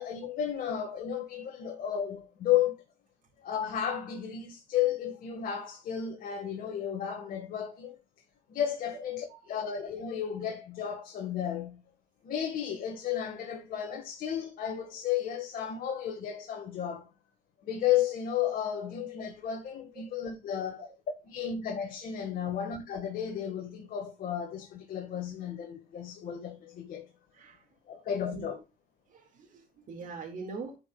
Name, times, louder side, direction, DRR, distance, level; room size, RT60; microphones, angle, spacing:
voice 1, 0.0-2.8 3.4-8.0 8.5-9.2 9.5-11.8 12.2-17.1 17.6-20.9 21.3-27.1 27.9-28.6, left 9 dB, 60° left, 1.6 m, -33 dB
voice 2, 27.3-28.6 29.1-30.8, right 4 dB, 50° right, 2.0 m, -44 dB
10.5 x 5.1 x 2.3 m
cardioid pair, 110°, 17 cm